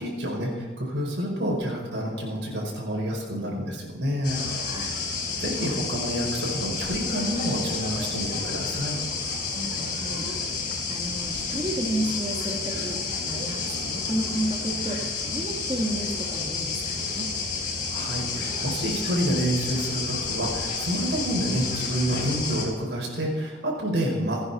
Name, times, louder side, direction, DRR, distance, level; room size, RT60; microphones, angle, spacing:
voice 1, 0.0-4.4 5.4-9.0 17.9-24.4, equal, 75° right, -2 dB, 4.9 m, -28 dB
sound 1, 4.2-22.6, left 4 dB, 50° left, 4.9 m, -30 dB
voice 2, 4.6-5.0 9.5-13.0 13.3-17.3, right 1 dB, 25° right, 0 dB, 1.7 m, -32 dB
29.0 x 9.7 x 4.2 m, 1.5 s
head